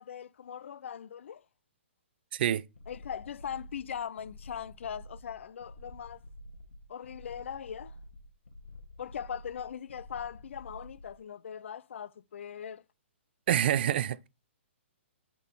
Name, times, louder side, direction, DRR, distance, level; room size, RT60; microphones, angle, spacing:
voice 1, 0.0-1.4 2.9-6.2 6.9-8.0 9.0-12.8, left 8 dB, 70° left, 0.4 m, -40 dB
voice 2, 2.3-2.6 13.5-14.3, right 11 dB, 50° right, 0.4 m, -27 dB
sound 1, 2.7-11.2, left 1 dB, 90° left, 1.3 m, -50 dB
7.2 x 3.7 x 5.8 m
hypercardioid pair, 140°, 7 cm